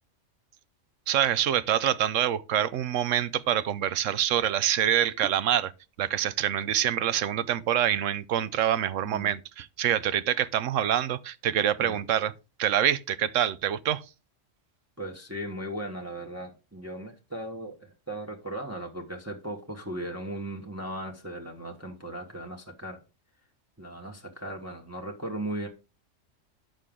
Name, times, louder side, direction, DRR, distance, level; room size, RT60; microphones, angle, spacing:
voice 1, 1.1-5.7 6.0-12.3 12.6-14.0, right 10 dB, 85° right, 1.0 m, -26 dB
voice 2, 9.0-9.3 11.8-12.0 15.0-23.0 23.8-25.7, right 1 dB, 15° right, 1.2 m, -37 dB
8.9 x 6.5 x 3.7 m
omnidirectional pair, 1.3 m